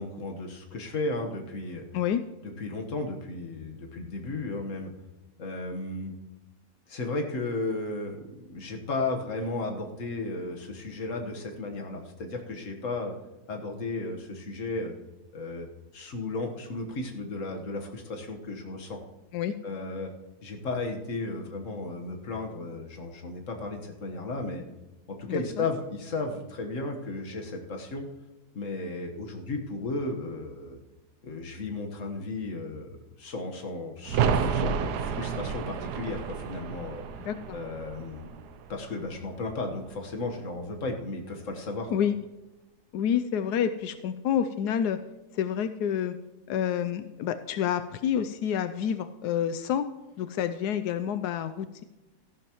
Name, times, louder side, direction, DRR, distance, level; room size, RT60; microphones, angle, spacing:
voice 1, 0.0-1.8 2.6-4.9 5.4-6.1 6.9-13.1 13.5-14.9 15.3-15.7 15.9-19.0 19.6-20.1 20.4-24.6 25.1-28.1 28.5-30.8 31.2-32.9 33.2-37.0 37.5-38.3 38.7-41.9, left 2 dB, 55° left, 3 dB, 1.7 m, -34 dB
voice 2, 25.3-25.6 37.2-37.6 41.9-42.2 42.9-45.0 45.3-46.2 46.5-49.9 50.2-51.8, left 9 dB, 90° left, 10 dB, 1.2 m, -28 dB
sound 1, 34.0-39.6 39.9-40.0, right 6 dB, 90° right, 1.3 m, -31 dB
14.0 x 12.0 x 3.0 m, 1.0 s
omnidirectional pair, 1.7 m